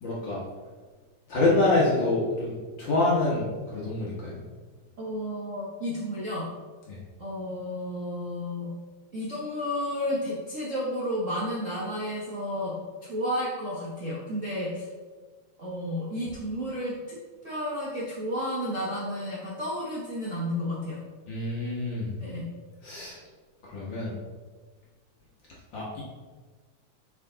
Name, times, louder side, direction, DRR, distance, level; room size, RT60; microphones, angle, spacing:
voice 1, 0.0-0.4 1.3-4.4 6.9-7.0 21.3-22.1 22.8-23.2 23.7-24.1 25.7-26.0, left 2 dB, 55° left, -6 dB, 1.4 m, -26 dB
voice 2, 5.0-6.5 7.2-8.7 9.1-12.7 13.0-14.9 15.6-17.2 17.4-21.0 22.2-22.4, equal, 90° right, -7 dB, 0.6 m, -32 dB
8.3 x 3.8 x 3.9 m, 1.4 s
omnidirectional pair, 3.6 m